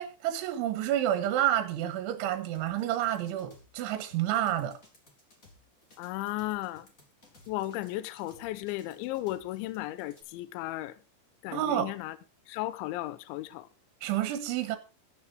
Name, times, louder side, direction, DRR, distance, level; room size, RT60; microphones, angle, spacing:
voice 1, 0.0-4.8 11.5-11.9 14.0-14.8, right 12 dB, 80° right, 3.7 m, -29 dB
sound 1, 2.5-10.2, left 2 dB, 20° left, 3.4 m, -59 dB
voice 2, 6.0-6.9 7.5-11.0 11.4-12.2 12.5-13.7, left 16 dB, 80° left, 3.1 m, -35 dB
14.0 x 10.5 x 4.7 m
omnidirectional pair, 5.5 m